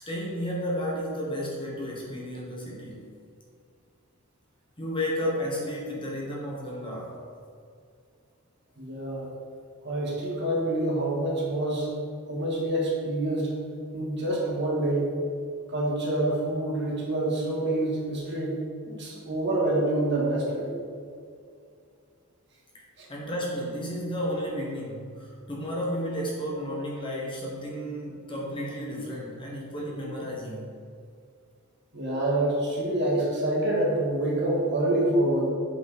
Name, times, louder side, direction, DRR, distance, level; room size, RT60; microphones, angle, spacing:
voice 1, 0.1-3.2 4.8-7.2 22.7-22.8 23.1-30.7, equal, 25° left, -3 dB, 1.3 m, -32 dB
voice 2, 8.8-9.3 9.8-11.9 12.3-13.5 13.9-15.1 15.7-20.7 23.0-23.1 31.9-35.5, right 1 dB, 50° right, -4 dB, 1.7 m, -27 dB
8.2 x 5.2 x 4.2 m, 2.3 s
head